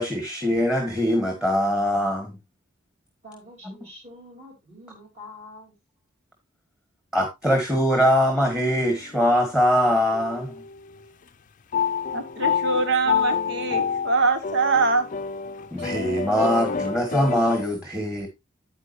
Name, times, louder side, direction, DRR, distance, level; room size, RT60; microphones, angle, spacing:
voice 1, 0.0-2.4 7.1-10.6 15.7-18.3, equal, 5° right, 1.7 m, -22 dB
voice 2, 3.2-5.8, left 1 dB, 40° right, 4.5 m, -45 dB
sound 1, 8.7-9.4 10.1-10.7 11.7-17.7, left 6 dB, 40° left, 0.6 m, -28 dB
voice 3, 12.1-15.1 15.8-15.9, right 3 dB, 65° right, 1.7 m, -23 dB
9.6 x 9.0 x 2.7 m
head